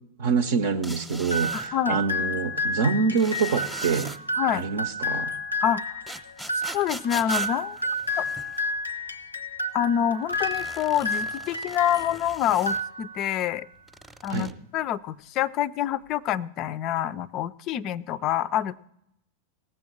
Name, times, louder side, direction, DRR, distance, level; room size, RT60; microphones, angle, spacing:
voice 1, 0.2-4.1 4.5-5.3 14.3-14.5, right 5 dB, 55° right, 0.6 m, -26 dB
sound 1, 0.8-1.7 3.2-4.2 6.1-8.7 10.3-12.8 13.9-14.5, right 1 dB, 5° right, 0.8 m, -40 dB
sound 2, 1.3-12.2 12.5-13.4, left 1 dB, 85° left, 0.6 m, -31 dB
voice 2, 1.5-2.0 4.4-4.7 5.6-6.0 6.7-7.8 8.2-8.3 9.7-13.7 14.2-18.7, left 10 dB, 35° left, 0.4 m, -27 dB
18.0 x 7.7 x 4.2 m
figure-of-eight pair, 90°, 0 cm